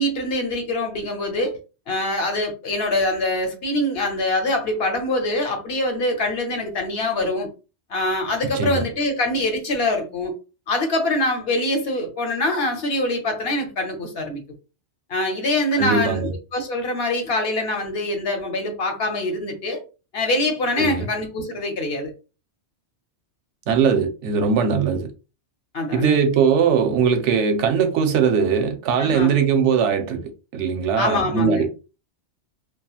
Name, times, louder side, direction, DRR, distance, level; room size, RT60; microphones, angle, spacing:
voice 1, 0.0-1.6 1.9-7.5 7.9-10.3 10.7-14.4 15.1-19.8 20.1-22.1 25.7-26.2 29.0-29.3 31.0-31.7, left 1 dB, 60° left, 0.9 m, -24 dB
voice 2, 15.8-16.3 20.8-21.1 23.7-25.1 25.9-30.2 30.5-31.7, right 6 dB, 80° right, 0.9 m, -20 dB
2.8 x 2.3 x 2.3 m
omnidirectional pair, 1.2 m